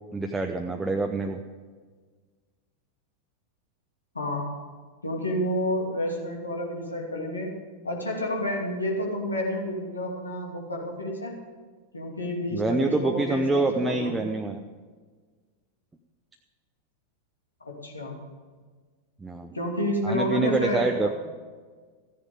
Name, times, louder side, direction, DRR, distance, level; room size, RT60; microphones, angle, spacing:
voice 1, 0.1-1.4 12.5-14.6 19.2-19.5 20.0-21.1, right 2 dB, 10° right, 3 dB, 0.7 m, -26 dB
voice 2, 4.1-4.7 5.0-7.5 7.8-11.4 11.9-14.2 17.6-18.2 19.5-21.1, equal, 80° left, -1 dB, 2.6 m, -30 dB
14.5 x 9.8 x 5.1 m, 1.5 s
figure-of-eight pair, 90°, 0 cm